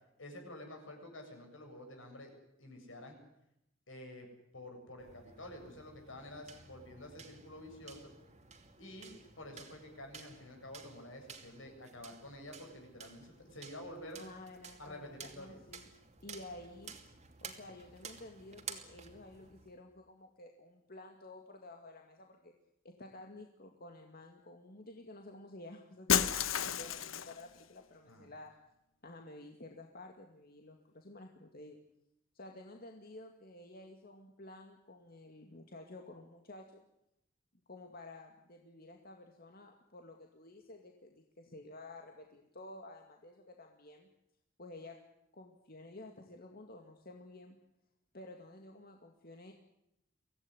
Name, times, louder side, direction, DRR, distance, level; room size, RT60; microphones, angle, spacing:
voice 1, 0.2-2.3 2.6-3.2 3.9-8.1 8.8-14.2 14.8-15.6 28.1-28.3, left 1 dB, 75° left, 3 dB, 7.7 m, -49 dB
blind person with White Cane, 5.0-19.8, right 6 dB, 35° right, 2.7 m, -53 dB
voice 2, 14.2-15.9 16.2-16.9 17.4-22.5 22.8-28.6 29.0-31.8 32.3-36.8 37.7-44.1 44.6-45.0 45.3-47.6 48.1-49.5, left 2 dB, 50° left, 3 dB, 2.3 m, -52 dB
Shatter, 26.1-27.4, left 8 dB, 90° left, 1.1 m, -31 dB
24.5 x 17.0 x 9.9 m, 0.82 s
head